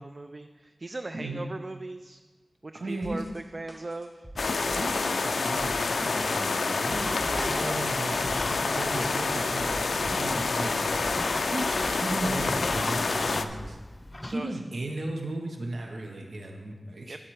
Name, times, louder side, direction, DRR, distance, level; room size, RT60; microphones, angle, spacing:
voice 1, 0.0-2.2 2.6-4.3 7.0-8.0 14.2-14.6 17.0-17.2, right 2 dB, 45° right, 8 dB, 0.3 m, -39 dB
voice 2, 1.1-1.5 2.7-3.2 4.7-7.1 7.4-11.0 11.5-11.7 12.0-13.8 14.3-17.2, right 2 dB, 75° right, 2 dB, 1.0 m, -35 dB
sound 1, 3.0-13.7, right 1 dB, 20° right, 0.9 m, -46 dB
sound 2, 4.4-13.5, left 4 dB, 80° left, 0.4 m, -28 dB
sound 3, 6.9-14.4, left 1 dB, 25° left, 0.6 m, -38 dB
8.8 x 7.5 x 4.8 m, 1.4 s
wide cardioid pair, 60°, 0 cm